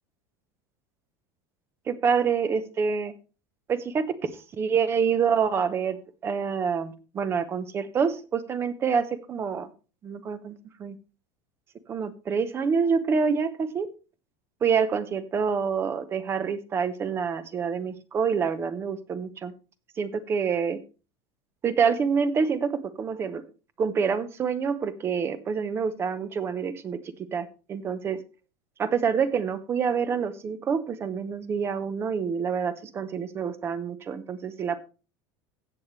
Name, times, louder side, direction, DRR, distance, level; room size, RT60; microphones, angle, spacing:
voice 1, 1.9-3.1 3.7-4.3 4.6-6.0 6.2-9.7 10.0-11.0 11.9-13.9 14.6-19.5 20.0-20.8 21.6-22.7 23.0-23.4 23.8-27.0 27.3-28.2 28.8-34.8, right 6 dB, 20° right, 13 dB, 0.8 m, -27 dB
16.5 x 6.5 x 3.2 m, 0.33 s
supercardioid pair, 175°, 13 cm